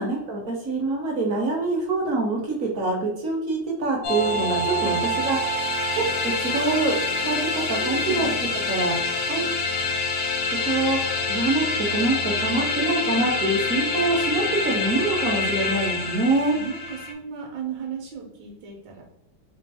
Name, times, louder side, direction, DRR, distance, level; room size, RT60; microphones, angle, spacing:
voice 1, 0.0-4.9 5.2-5.7 5.9-8.3 8.7-9.6 10.6-16.6, right 2 dB, 60° right, -1 dB, 0.9 m, -25 dB
sound 1, 4.0-17.1, left 3 dB, 65° left, 0.7 m, -26 dB
voice 2, 7.8-8.2 16.5-19.0, right 6 dB, 75° right, 0 dB, 1.3 m, -35 dB
3.4 x 2.8 x 3.3 m, 0.80 s
omnidirectional pair, 2.1 m